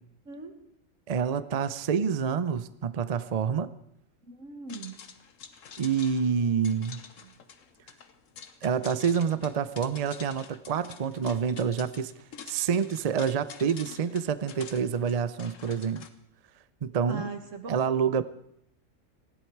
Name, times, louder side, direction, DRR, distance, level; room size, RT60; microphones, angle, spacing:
voice 1, 1.1-3.7 5.8-7.0 8.6-12.1 12.5-16.1 16.8-17.3 17.7-18.2, right 7 dB, 45° right, 14 dB, 0.5 m, -27 dB
voice 2, 4.2-5.0 7.2-7.3 17.1-17.7, right 4 dB, 80° right, 6 dB, 2.0 m, -39 dB
sound 1, 4.7-16.1, left 7 dB, 90° left, 1.4 m, -47 dB
19.5 x 15.0 x 4.7 m, 0.77 s
omnidirectional pair, 1.3 m